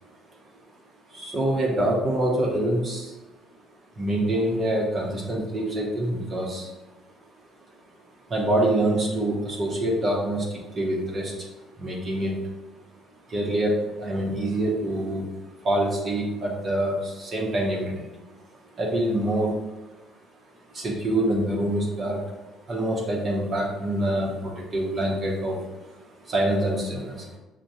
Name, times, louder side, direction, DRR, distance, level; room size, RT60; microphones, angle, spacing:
voice 1, 1.1-3.2 4.0-6.7 8.3-11.5 11.8-12.4 13.3-15.2 15.6-18.1 18.8-19.5 20.7-22.2 22.7-27.4, right 1 dB, 40° right, -2 dB, 0.8 m, -26 dB
5.8 x 2.2 x 2.7 m, 1.1 s
cardioid pair, 110°, 0 cm